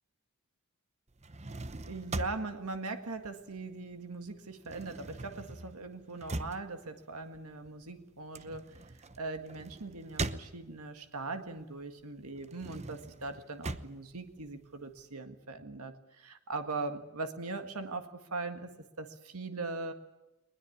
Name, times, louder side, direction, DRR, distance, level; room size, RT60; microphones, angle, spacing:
sound 1, 1.1-3.9 4.2-11.0 11.5-15.0, right 2 dB, 30° right, 0.9 m, -42 dB
voice 1, 1.9-19.9, right 3 dB, 85° right, 7 dB, 1.8 m, -40 dB
20.5 x 20.5 x 8.5 m, 0.98 s
head